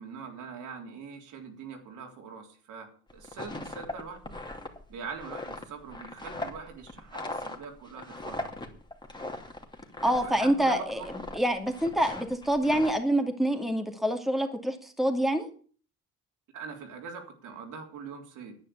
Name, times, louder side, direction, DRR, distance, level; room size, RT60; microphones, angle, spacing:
voice 1, 0.0-4.4 4.9-8.5 10.2-11.0 16.5-18.6, right 5 dB, 85° right, 3 dB, 3.5 m, -43 dB
sound 1, 3.1-10.6 10.8-11.4 11.7-12.9, left 2 dB, 15° left, 2.8 m, -39 dB
voice 2, 10.0-11.0 11.3-15.5, right 1 dB, ahead, 4 dB, 2.4 m, -26 dB
10.5 x 9.3 x 8.5 m, 0.43 s
cardioid pair, 90°, 30 cm